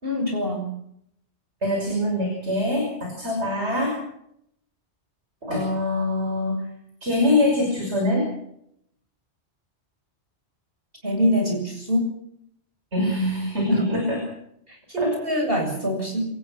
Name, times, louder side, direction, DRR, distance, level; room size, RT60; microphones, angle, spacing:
voice 1, 0.0-0.7 11.0-12.1 13.7-13.9 14.7-16.2, equal, 55° right, 2 dB, 7.5 m, -24 dB
voice 2, 1.6-4.0 5.4-6.7 7.0-8.3 12.9-14.2 15.0-15.2, left 1 dB, 80° right, 1 dB, 6.3 m, -24 dB
27.0 x 19.5 x 6.1 m, 0.73 s
omnidirectional pair, 1.1 m